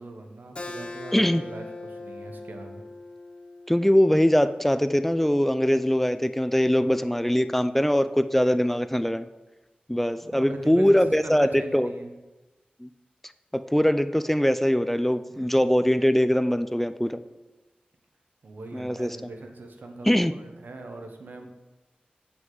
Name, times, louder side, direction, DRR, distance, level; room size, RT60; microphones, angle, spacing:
voice 1, 0.0-2.8 10.2-12.1 15.3-15.5 18.4-21.5, right 2 dB, 85° right, 4 dB, 1.0 m, -41 dB
Keyboard (musical), 0.6-5.7, left 2 dB, 35° left, 0.8 m, -41 dB
voice 2, 3.7-9.3 9.9-11.9 12.8-12.9 13.5-17.2 18.7-19.1 20.1-20.3, equal, 5° left, 12 dB, 0.4 m, -22 dB
9.3 x 6.0 x 3.9 m, 1.1 s
wide cardioid pair, 55°, 3 cm